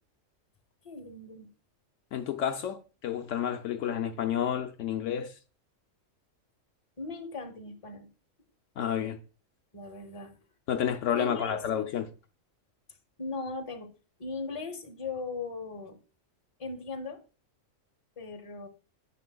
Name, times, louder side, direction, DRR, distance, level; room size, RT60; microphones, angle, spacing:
voice 1, 0.8-1.5 7.0-8.1 9.7-10.4 11.2-11.6 13.2-13.9 14.2-16.0 16.6-17.2 18.2-18.7, left 3 dB, 30° left, 0.8 m, -38 dB
voice 2, 2.1-5.3 8.8-9.2 10.7-12.1, left 9 dB, 70° left, 0.9 m, -30 dB
9.7 x 6.1 x 2.2 m
omnidirectional pair, 1.4 m